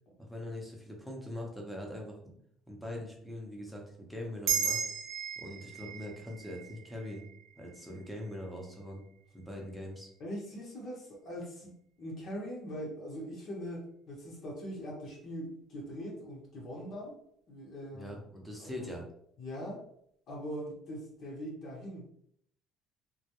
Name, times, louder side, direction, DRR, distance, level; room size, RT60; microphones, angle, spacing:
voice 1, 0.2-2.4 2.7-4.8 5.4-7.2 7.6-9.0 9.3-10.1 17.9-19.1, left 1 dB, ahead, -1 dB, 0.7 m, -42 dB
sound 1, 4.5-9.2, right 7 dB, 75° right, 0.6 m, -37 dB
voice 2, 10.2-17.2 17.5-18.2 18.6-18.9 19.4-19.8 20.3-22.1, equal, 55° left, -3 dB, 0.8 m, -41 dB
2.2 x 2.1 x 2.9 m, 0.69 s
cardioid pair, 110°, 0 cm